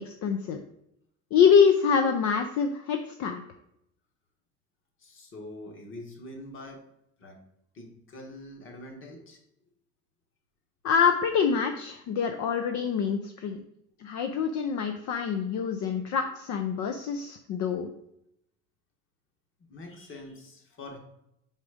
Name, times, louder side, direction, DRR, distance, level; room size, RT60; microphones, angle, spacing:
voice 1, 0.1-0.6 1.3-3.4 10.8-13.6 14.0-17.9, left 6 dB, 65° left, 6 dB, 0.5 m, -25 dB
voice 2, 5.0-6.8 7.2-7.4 7.7-9.4 19.6-21.0, left 1 dB, 40° left, 2 dB, 1.3 m, -44 dB
5.0 x 4.1 x 4.8 m, 0.79 s
cardioid pair, 140°, 32 cm